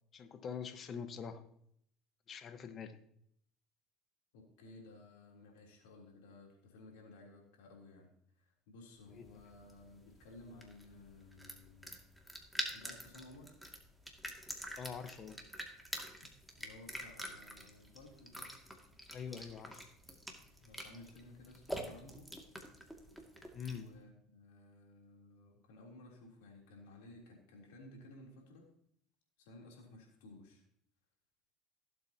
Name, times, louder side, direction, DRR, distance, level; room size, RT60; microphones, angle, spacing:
voice 1, 0.1-1.4 2.3-3.0 9.2-9.3 14.8-15.4 19.1-19.8 23.5-23.9, left 7 dB, 40° left, 9 dB, 1.2 m, -44 dB
voice 2, 4.3-12.0 12.7-13.5 16.6-18.6 20.6-22.3 23.7-28.7 29.4-30.6, left 2 dB, 75° left, 0 dB, 3.4 m, -56 dB
sound 1, 9.1-23.9, equal, ahead, 2.3 m, -47 dB
17.5 x 7.8 x 2.9 m, 0.70 s
hypercardioid pair, 80°, 0 cm